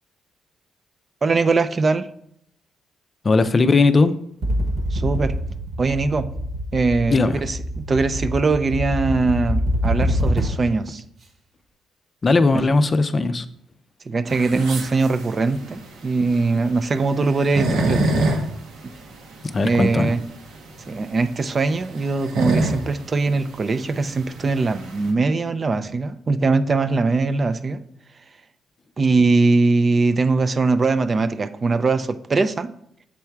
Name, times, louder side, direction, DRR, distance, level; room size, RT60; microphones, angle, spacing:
voice 1, 1.2-2.1 4.9-5.3 5.8-6.3 6.7-7.6 7.9-11.0 12.5-12.7 14.1-18.1 19.6-20.2 20.9-27.8 29.0-32.7, right 3 dB, 35° right, 0.4 m, -21 dB
voice 2, 3.2-4.1 7.1-7.4 12.2-13.5 19.4-20.1, left 3 dB, 30° left, 0.4 m, -18 dB
sound 1, 4.4-10.8, equal, 55° right, 1.2 m, -25 dB
sound 2, 14.3-25.1, right 2 dB, 85° right, 1.1 m, -27 dB
7.2 x 3.5 x 4.5 m
cardioid pair, 90°, 0 cm